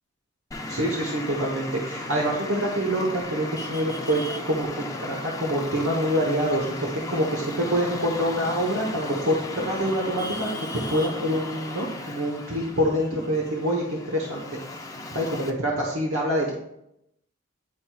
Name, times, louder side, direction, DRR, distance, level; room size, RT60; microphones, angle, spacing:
Traffic noise roadway noise, 0.5-15.5, left 2 dB, 15° left, 0.5 m, -36 dB
voice 1, 0.7-4.7 5.0-10.5 10.9-14.6 15.1-16.5, equal, 70° right, -2 dB, 1.1 m, -26 dB
9.8 x 4.4 x 2.4 m, 0.80 s
head